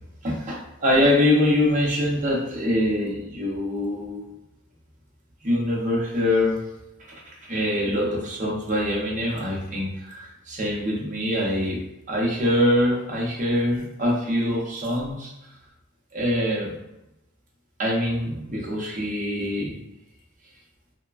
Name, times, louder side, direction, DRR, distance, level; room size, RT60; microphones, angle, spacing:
voice 1, 0.2-4.2 5.4-6.6 7.1-11.8 12.1-15.3 16.1-16.7 17.8-19.7, left 1 dB, 35° right, -3 dB, 0.6 m, -24 dB
3.0 x 2.1 x 2.4 m, 0.90 s
head